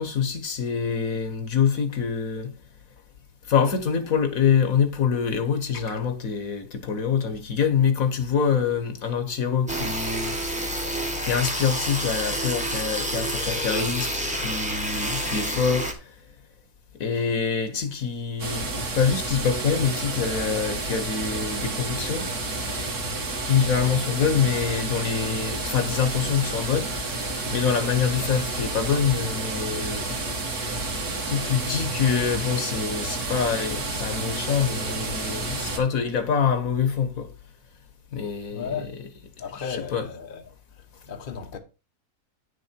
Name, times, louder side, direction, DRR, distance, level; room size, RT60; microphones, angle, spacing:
voice 1, 0.0-2.5 3.5-10.4 10.9-16.1 17.0-22.3 23.5-30.2 31.3-37.3 38.1-38.8 39.7-40.0, left 6 dB, 60° left, 1.6 m, -25 dB
sound 1, 9.7-15.9, right 1 dB, 5° right, 1.3 m, -28 dB
sound 2, 18.4-35.8, right 2 dB, 70° right, 2.3 m, -30 dB
voice 2, 38.5-39.0 39.4-40.4 40.7-41.6, left 6 dB, 40° left, 1.1 m, -35 dB
9.6 x 6.6 x 4.5 m
omnidirectional pair, 1.7 m